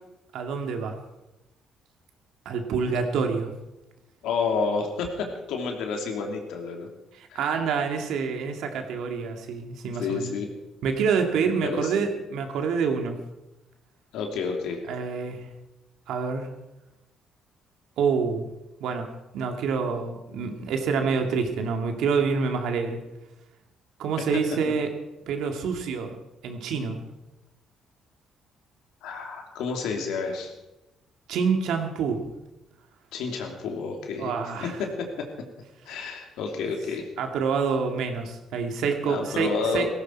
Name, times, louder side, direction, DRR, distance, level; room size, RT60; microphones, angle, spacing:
voice 1, 0.3-1.0 2.5-3.5 7.1-10.3 10.8-13.2 14.9-15.5 16.1-16.5 18.0-18.4 18.8-23.0 24.0-24.9 25.3-26.2 26.4-27.0 31.3-32.2 34.2-34.8 37.2-39.9, right 5 dB, 80° right, 4 dB, 2.2 m, -27 dB
voice 2, 4.2-6.9 7.3-7.4 10.0-10.5 11.6-11.9 14.1-14.8 29.0-30.5 33.1-34.3 34.6-35.3 35.9-37.0 39.0-39.9, left 4 dB, 85° left, 3 dB, 2.9 m, -30 dB
17.5 x 15.5 x 4.7 m, 0.97 s
cardioid pair, 95°, 0 cm